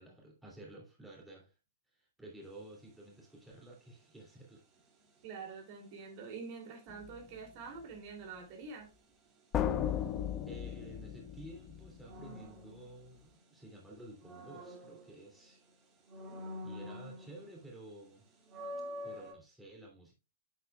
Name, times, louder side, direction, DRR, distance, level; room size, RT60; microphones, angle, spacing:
voice 1, 0.0-1.6 1.9-4.6 9.8-10.0 10.5-15.7 16.6-18.4 19.0-20.1, right 1 dB, 5° right, 2.7 m, -52 dB
sound 1, 2.4-2.8 12.1-13.5 13.9-15.6 16.1-17.6 18.0-18.1 18.5-19.3, left 1 dB, 25° right, 2.3 m, -46 dB
voice 2, 5.2-8.9, right 5 dB, 45° right, 2.8 m, -46 dB
sound 2, 6.9-7.2 9.5-12.2, left 9 dB, 25° left, 0.8 m, -36 dB
8.1 x 8.1 x 2.3 m
figure-of-eight pair, 110°, 0 cm